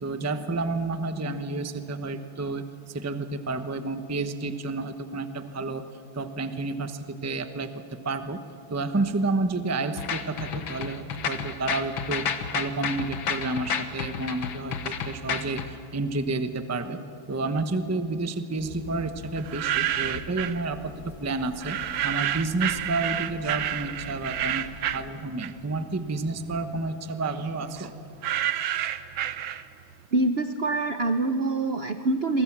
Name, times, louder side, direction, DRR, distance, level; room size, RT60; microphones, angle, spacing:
voice 1, 0.0-5.8 6.1-8.4 8.7-17.0 17.3-27.9, right 3 dB, 15° right, 9 dB, 0.6 m, -30 dB
sound 1, 10.0-15.7, left 7 dB, 85° left, 2.1 m, -31 dB
sound 2, 18.6-25.3, left 3 dB, 40° left, 1.8 m, -45 dB
sound 3, 19.4-20.6 21.6-25.8 26.2-29.9, right 11 dB, 80° right, 1.6 m, -30 dB
voice 2, 30.1-32.4, right 2 dB, 55° right, 9 dB, 0.7 m, -25 dB
29.0 x 23.0 x 7.4 m, 2.8 s
omnidirectional pair, 2.1 m